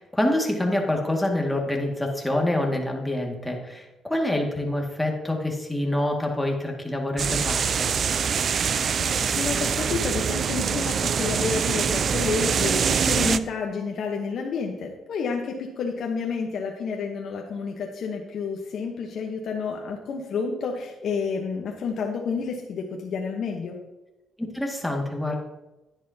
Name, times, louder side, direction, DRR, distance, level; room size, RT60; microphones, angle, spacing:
voice 1, 0.0-7.9 24.4-25.4, left 1 dB, 5° left, 0 dB, 2.0 m, -26 dB
sound 1, 7.2-13.4, right 7 dB, 55° right, 0.4 m, -24 dB
voice 2, 9.0-23.8, left 5 dB, 65° left, 1 dB, 1.0 m, -30 dB
10.5 x 10.0 x 2.8 m, 1.1 s
cardioid pair, 90°, 0 cm